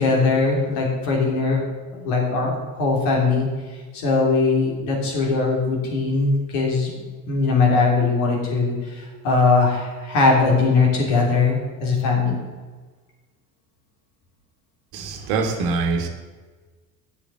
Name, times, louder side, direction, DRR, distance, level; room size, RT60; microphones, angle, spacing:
voice 1, 0.0-1.6 2.0-3.5 3.9-6.9 7.3-12.4, left 3 dB, 65° left, -1 dB, 3.2 m, -20 dB
voice 2, 14.9-16.1, right 4 dB, 60° right, 6 dB, 1.6 m, -24 dB
8.8 x 7.2 x 7.4 m, 1.3 s
figure-of-eight pair, 60°, 42 cm